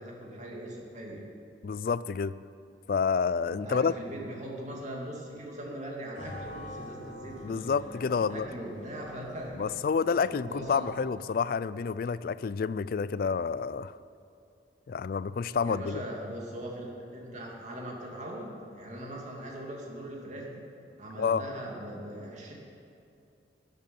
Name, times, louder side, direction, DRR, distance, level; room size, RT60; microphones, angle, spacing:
voice 1, 0.0-1.3 3.5-7.7 8.2-9.8 10.3-10.9 15.6-20.7 21.0-22.5, right 1 dB, 40° right, -2 dB, 2.5 m, -40 dB
voice 2, 1.6-2.3 2.9-3.9 7.4-8.5 9.6-14.0 14.9-16.0 21.2-21.4, left 5 dB, 50° left, 17 dB, 0.3 m, -29 dB
sound 1, 6.1-11.3, left 1 dB, 80° left, 2.8 m, -46 dB
13.5 x 8.2 x 9.4 m, 2.6 s
head